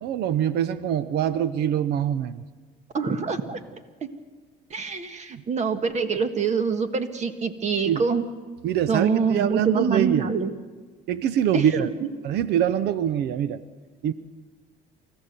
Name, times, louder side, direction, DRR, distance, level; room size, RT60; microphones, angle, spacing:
voice 1, 0.0-2.4 7.8-8.0 8.6-10.3 11.1-11.9 12.2-13.6 14.0-14.1, right 9 dB, 75° right, 15 dB, 0.7 m, -24 dB
voice 2, 2.9-3.6 4.7-8.2 8.9-10.5 11.5-12.1, right 5 dB, 45° right, 9 dB, 1.5 m, -25 dB
28.5 x 14.0 x 6.7 m, 1.4 s
cardioid pair, 110°, 17 cm